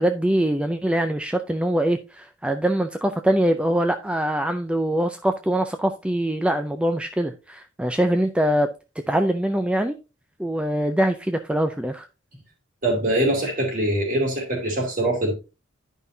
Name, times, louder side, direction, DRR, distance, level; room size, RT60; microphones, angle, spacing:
voice 1, 0.0-8.7 9.1-10.0 10.4-12.1, right 1 dB, 5° right, 0.4 m, -23 dB
voice 2, 12.8-15.3, right 1 dB, 45° right, 2.6 m, -23 dB
10.5 x 5.4 x 2.7 m
head